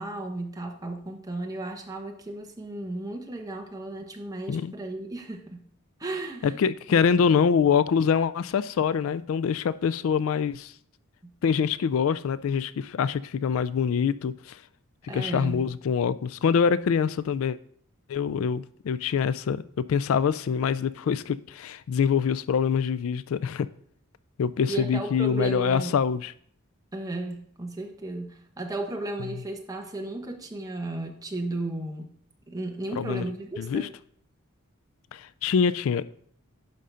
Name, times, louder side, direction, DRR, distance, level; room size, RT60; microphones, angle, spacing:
voice 1, 0.0-5.6 6.0-6.6 6.9-7.3 11.2-11.3 15.1-15.7 24.7-25.9 26.9-32.1 32.5-33.9, right 2 dB, 15° right, 2 dB, 1.1 m, -34 dB
voice 2, 6.4-10.7 11.4-14.6 15.1-17.6 18.1-23.7 24.4-26.3 33.0-33.3 33.6-33.9 35.1-36.1, left 6 dB, 70° left, 15 dB, 0.3 m, -25 dB
10.5 x 3.8 x 5.6 m, 0.62 s
head